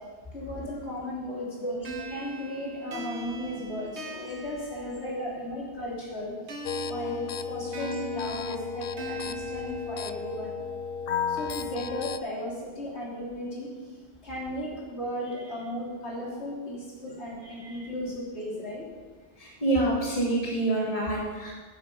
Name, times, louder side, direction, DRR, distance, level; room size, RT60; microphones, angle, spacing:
voice 1, 0.3-6.5 6.8-10.6 11.3-18.9, left 1 dB, 80° left, -5 dB, 3.6 m, -36 dB
voice 2, 1.6-2.1 5.1-5.2 19.4-21.5, right 2 dB, 35° left, -3 dB, 2.4 m, -27 dB
sound 1, 1.8-5.5 6.5-10.5, right 2 dB, 90° right, 1.8 m, -41 dB
sound 2, 6.6-12.2, left 6 dB, 60° left, 0.7 m, -34 dB
14.0 x 8.3 x 5.3 m, 1.4 s
omnidirectional pair, 1.1 m